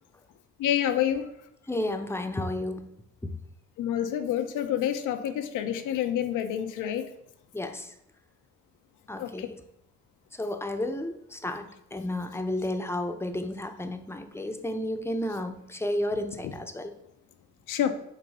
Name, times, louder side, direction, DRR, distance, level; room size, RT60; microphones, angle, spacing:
voice 1, 0.6-1.3 3.8-7.0 9.2-9.5 16.4-16.5 17.7-17.9, left 10 dB, 85° left, 8 dB, 0.7 m, -28 dB
voice 2, 1.7-2.9 3.2-3.3 7.5-7.9 9.1-9.6 10.4-16.9, left 1 dB, 10° left, 6 dB, 0.7 m, -32 dB
7.8 x 2.7 x 5.4 m, 0.80 s
cardioid pair, 90°, 30 cm